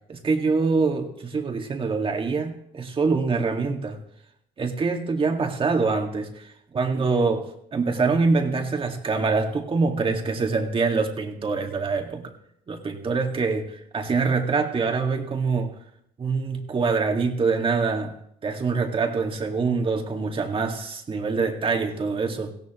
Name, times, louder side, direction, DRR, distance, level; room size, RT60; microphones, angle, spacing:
voice 1, 0.1-4.0 4.6-12.3 12.7-15.7 16.2-18.1 18.4-22.5, right 4 dB, 30° right, 3 dB, 2.0 m, -25 dB
18.0 x 16.0 x 3.1 m, 0.73 s
cardioid pair, 110°, 17 cm